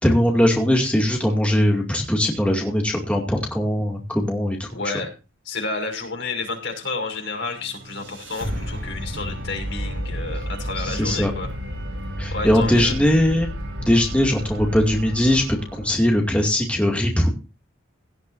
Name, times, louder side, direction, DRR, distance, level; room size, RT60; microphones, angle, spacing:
voice 1, 0.0-4.7 10.8-11.3 12.2-13.5 13.9-17.3, left 1 dB, 5° left, 0 dB, 2.3 m, -20 dB
voice 2, 4.7-5.1 5.4-11.5 12.3-13.0, left 3 dB, 65° left, 3 dB, 5.9 m, -30 dB
sound 1, 7.4-16.5, equal, 70° right, 7.8 m, -32 dB
17.5 x 12.5 x 2.6 m, 0.31 s
head